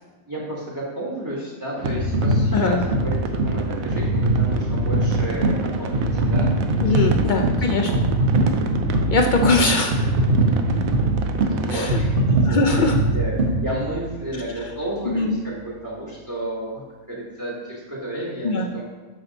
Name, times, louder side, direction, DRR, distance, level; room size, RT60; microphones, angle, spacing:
voice 1, 0.3-6.5 7.2-7.4 7.9-8.0 11.5-18.8, right 1 dB, 15° right, -6 dB, 1.2 m, -32 dB
sound 1, 1.8-14.2 14.8-14.9, right 1 dB, 45° right, 1.4 m, -22 dB
sound 2, 1.8-11.8, right 4 dB, 80° right, 1.0 m, -31 dB
voice 2, 2.5-2.8 6.8-7.9 9.1-9.9 11.7-12.0 12.4-13.0 15.1-15.4 18.4-18.7, left 3 dB, 65° left, 3 dB, 0.4 m, -21 dB
6.0 x 5.9 x 3.9 m, 1.3 s
omnidirectional pair, 1.4 m